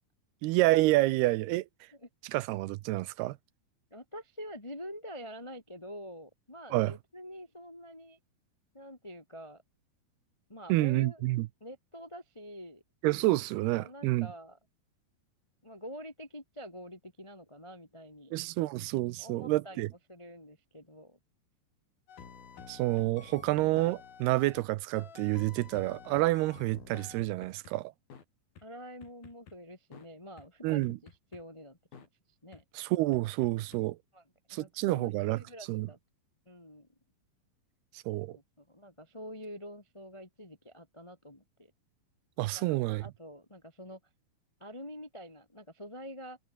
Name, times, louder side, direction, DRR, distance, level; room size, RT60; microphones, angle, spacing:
voice 1, 0.4-1.7 2.2-3.4 6.7-6.9 10.7-11.5 13.0-14.3 18.3-19.9 22.7-27.9 30.6-31.0 32.7-34.0 34.5-35.4 35.7-35.9 38.1-38.4 42.4-43.1, right 18 dB, 90° right, 2.8 m, -28 dB
voice 2, 3.9-8.2 8.7-9.6 10.5-11.2 11.6-12.8 13.7-14.6 15.6-18.3 19.2-19.8 20.1-21.2 28.6-32.1 32.4-32.6 34.1-36.0 36.4-36.9 38.3-41.7 42.5-44.0 44.6-46.4, equal, 35° left, 0.4 m, -47 dB
sound 1, 22.1-24.7 25.0-27.7 28.1-28.2 28.6-28.7 29.0-29.6 29.9-30.1 30.4-30.5 30.8-31.4 31.9-32.1 32.5-32.6 33.1-33.8, left 7 dB, 70° left, 5.7 m, -50 dB
omnidirectional pair, 4.5 m